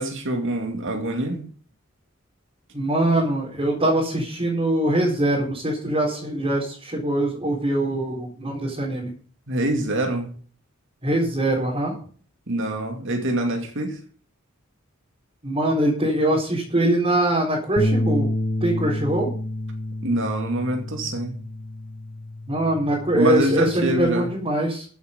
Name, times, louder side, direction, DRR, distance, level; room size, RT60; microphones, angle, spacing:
voice 1, 0.0-1.4 9.5-10.3 12.5-14.0 20.0-21.4 23.1-24.3, right 1 dB, 65° right, 2.4 m, -25 dB
voice 2, 2.7-9.1 11.0-11.9 15.4-18.3 18.6-19.3 22.5-24.8, right 1 dB, 30° right, 4.3 m, -23 dB
Bass guitar, 17.8-24.0, left 1 dB, 35° left, 1.2 m, -29 dB
14.5 x 8.3 x 5.3 m
head